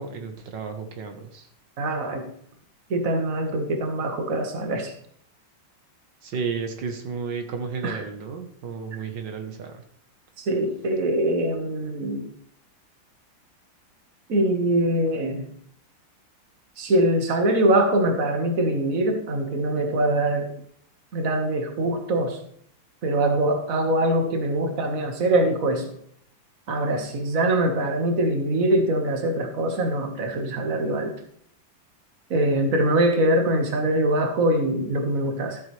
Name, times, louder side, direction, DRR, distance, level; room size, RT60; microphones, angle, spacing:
voice 1, 0.0-1.5 6.2-9.8, right 5 dB, 65° right, 5 dB, 1.8 m, -32 dB
voice 2, 1.8-2.3 2.9-4.9 7.8-8.0 10.4-12.3 14.3-15.5 16.8-20.5 21.1-22.4 23.0-25.9 26.7-31.2 32.3-35.6, right 1 dB, 45° right, 5 dB, 1.8 m, -23 dB
13.5 x 8.0 x 3.3 m, 0.65 s
omnidirectional pair, 2.1 m